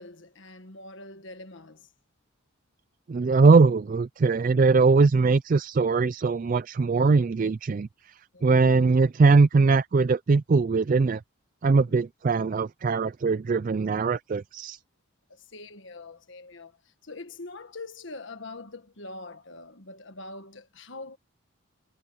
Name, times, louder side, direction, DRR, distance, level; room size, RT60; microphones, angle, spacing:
voice 1, 0.0-1.9 8.3-8.7 11.8-11.9 15.3-16.7 17.0-21.2, left 2 dB, 60° left, 1.6 m, -43 dB
voice 2, 3.1-7.9 8.4-11.2 11.6-14.8, right 4 dB, 40° right, 0.3 m, -21 dB
head